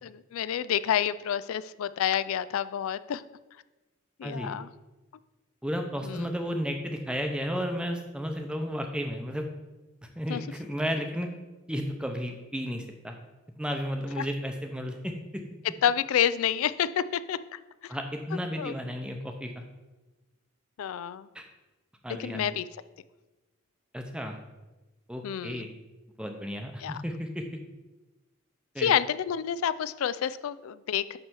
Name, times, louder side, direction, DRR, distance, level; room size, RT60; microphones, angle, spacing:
voice 1, 0.0-3.2 4.2-4.7 6.0-6.3 10.3-10.4 14.2-14.3 15.8-18.0 18.6-18.7 20.8-21.3 22.1-22.7 25.2-25.7 26.8-27.0 28.8-31.2, left 9 dB, 75° left, 16 dB, 0.3 m, -29 dB
voice 2, 5.6-9.5 10.2-11.3 11.7-13.1 13.6-15.4 17.9-19.5 21.3-21.5 22.0-22.5 23.9-24.4 25.1-25.7 26.2-27.5 28.7-28.9, equal, 5° right, 4 dB, 0.7 m, -33 dB
9.7 x 3.4 x 6.0 m, 1.1 s
head